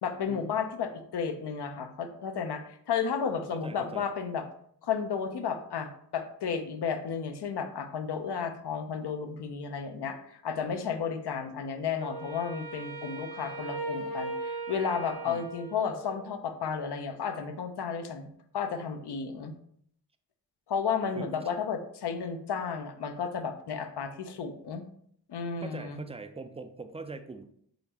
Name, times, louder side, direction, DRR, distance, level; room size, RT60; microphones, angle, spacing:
voice 1, 0.0-4.4 4.8-18.3 18.5-19.5 20.7-24.8 25.3-26.0, left 6 dB, 70° left, 7 dB, 0.6 m, -33 dB
voice 2, 3.5-4.1 15.2-15.5 21.2-21.5 25.6-27.4, right 3 dB, 15° right, 8 dB, 0.4 m, -42 dB
Wind instrument woodwind instrument, 12.0-16.4, right 3 dB, 60° right, 0.8 m, -38 dB
3.9 x 3.2 x 2.9 m, 0.66 s
cardioid pair, 50°, 42 cm